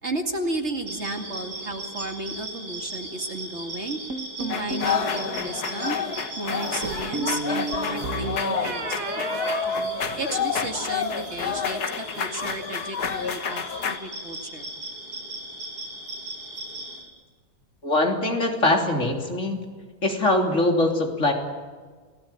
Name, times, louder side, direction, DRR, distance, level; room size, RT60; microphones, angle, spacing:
voice 1, 0.0-4.0 4.4-6.0 6.4-9.3 10.2-14.7, right 2 dB, 45° right, 4 dB, 2.6 m, -33 dB
sound 1, 0.9-17.0, right 1 dB, 85° right, 8.2 m, -38 dB
sound 2, 4.1-4.9 6.8-10.6, right 3 dB, 65° right, 1.8 m, -33 dB
sound 3, 4.5-14.0, left 6 dB, 80° left, 2.1 m, -29 dB
voice 2, 17.8-19.6 20.0-21.3, left 2 dB, 50° left, 2 dB, 3.8 m, -22 dB
29.0 x 19.0 x 9.2 m, 1.5 s
omnidirectional pair, 1.7 m